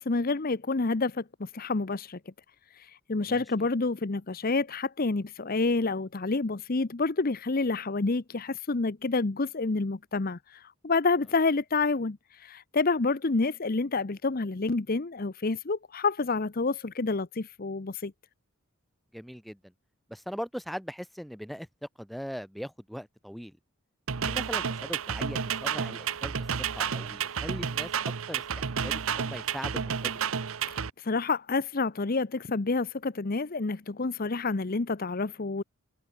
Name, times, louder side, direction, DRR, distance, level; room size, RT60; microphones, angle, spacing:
voice 1, 0.0-2.2 2.8-18.1 31.0-35.6, left 3 dB, 45° left, 0.8 m, -28 dB
voice 2, 3.2-3.7 19.1-19.6 20.1-21.7 22.0-23.6 24.2-26.4 26.7-27.9 28.3-30.1, equal, ahead, 2.2 m, -40 dB
sound 1, 24.1-30.9, right 7 dB, 70° right, 0.8 m, -31 dB
head